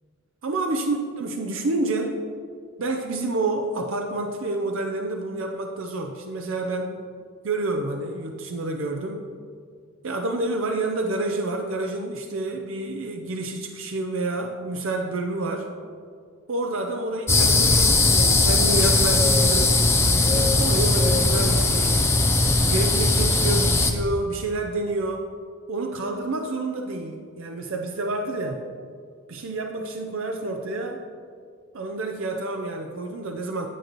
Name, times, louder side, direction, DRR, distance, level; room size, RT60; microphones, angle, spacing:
voice 1, 0.4-2.2 2.8-7.0 7.4-9.2 10.0-15.7 16.5-19.8 20.1-22.0 22.6-25.3 25.7-28.6 29.3-31.0 31.7-33.7, right 2 dB, 65° right, 3 dB, 0.5 m, -28 dB
sound 1, 17.3-23.9, left 2 dB, 10° left, 0.4 m, -19 dB
9.0 x 8.0 x 3.0 m, 2.1 s
head